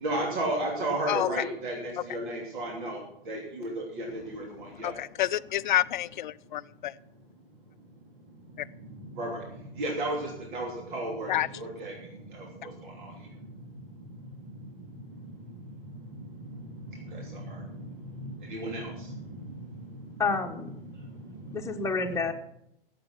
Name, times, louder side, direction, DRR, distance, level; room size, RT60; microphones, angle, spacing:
voice 1, 0.0-3.0 3.3-4.9 9.1-9.4 9.8-11.9 12.3-13.1 17.0-17.7 18.1-19.4, right 1 dB, 55° right, 0 dB, 3.1 m, -33 dB
voice 2, 5.0-6.9 11.3-11.5, left 13 dB, 55° left, 17 dB, 0.5 m, -28 dB
voice 3, 20.2-20.8 21.5-22.3, left 4 dB, 10° left, 2 dB, 1.3 m, -29 dB
17.0 x 7.7 x 5.9 m, 0.78 s
figure-of-eight pair, 105°, 29 cm